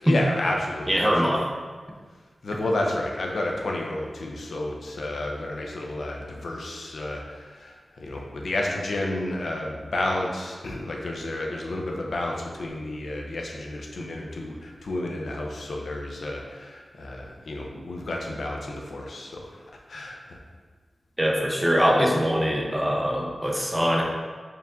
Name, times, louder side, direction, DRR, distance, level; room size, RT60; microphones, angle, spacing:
voice 1, 0.0-1.3 2.4-19.6 19.9-20.4, left 1 dB, 70° left, 0 dB, 0.6 m, -31 dB
voice 2, 0.9-1.5 21.2-24.0, equal, 10° right, -1 dB, 0.6 m, -22 dB
4.5 x 2.6 x 3.5 m, 1.5 s
wide cardioid pair, 115°, 0 cm